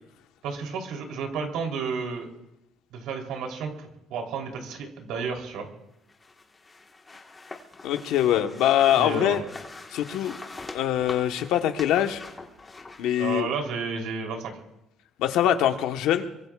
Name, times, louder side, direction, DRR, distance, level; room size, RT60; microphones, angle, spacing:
voice 1, 0.4-2.3 2.9-5.7 9.0-9.4 13.2-14.5, right 5 dB, 80° right, 2 dB, 3.5 m, -32 dB
sound 1, 6.1-13.3, left 3 dB, 20° left, 1.6 m, -43 dB
voice 2, 7.8-9.4 9.9-10.3 10.7-12.2 13.0-13.5 15.2-16.3, left 11 dB, 80° left, 6 dB, 1.3 m, -23 dB
23.5 x 23.5 x 2.5 m, 0.87 s
cardioid pair, 135°, 0 cm